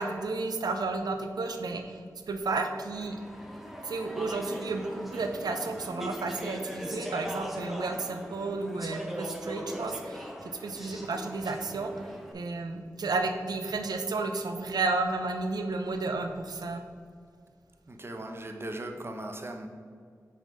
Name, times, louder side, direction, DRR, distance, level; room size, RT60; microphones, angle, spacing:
voice 1, 0.0-2.0 2.3-3.2 3.8-12.1 12.3-16.8, right 3 dB, 85° right, 5 dB, 0.6 m, -32 dB
Speech / Chatter, 2.9-12.3, equal, ahead, 1.0 m, -40 dB
voice 2, 17.9-19.7, right 1 dB, 35° right, 4 dB, 0.8 m, -38 dB
6.5 x 4.1 x 5.0 m, 2.1 s
cardioid pair, 45°, 7 cm